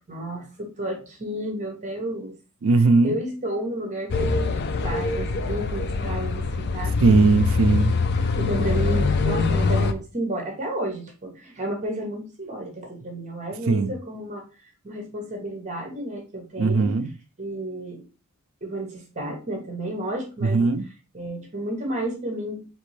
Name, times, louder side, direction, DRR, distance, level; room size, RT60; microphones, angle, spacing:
voice 1, 0.1-2.3 3.0-7.2 8.4-16.9 17.4-18.0 18.6-20.6 21.1-22.7, right 1 dB, 35° right, 0.9 m, -32 dB
voice 2, 2.6-3.2 7.0-7.9 13.7-13.9 16.6-17.1 20.4-20.8, right 3 dB, 65° right, 0.4 m, -18 dB
sound 1, 4.1-9.9, left 4 dB, 50° left, 0.4 m, -23 dB
4.3 x 3.0 x 3.1 m
head